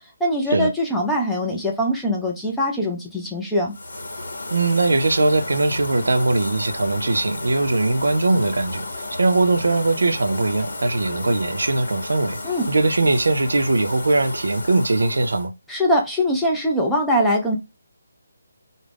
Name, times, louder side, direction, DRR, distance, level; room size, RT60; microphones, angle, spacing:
voice 1, 0.0-3.7 12.4-12.7 15.7-17.6, equal, ahead, 0.3 m, -22 dB
sound 1, 3.7-15.5, left 2 dB, 75° left, 1.0 m, -33 dB
voice 2, 4.5-8.9 9.2-12.4 12.7-15.5, right 2 dB, 90° right, 0.5 m, -20 dB
2.4 x 2.0 x 3.3 m
hypercardioid pair, 175°, 0 cm